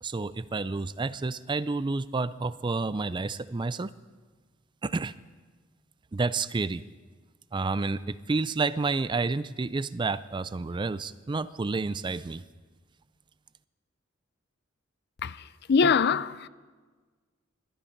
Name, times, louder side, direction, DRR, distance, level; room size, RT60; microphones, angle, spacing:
voice 1, 0.0-3.9 4.8-5.1 6.1-6.8 7.5-12.4, right 3 dB, 25° right, 0.4 m, -30 dB
voice 2, 15.2-16.5, left 5 dB, 55° left, 0.5 m, -24 dB
21.0 x 12.5 x 5.3 m
head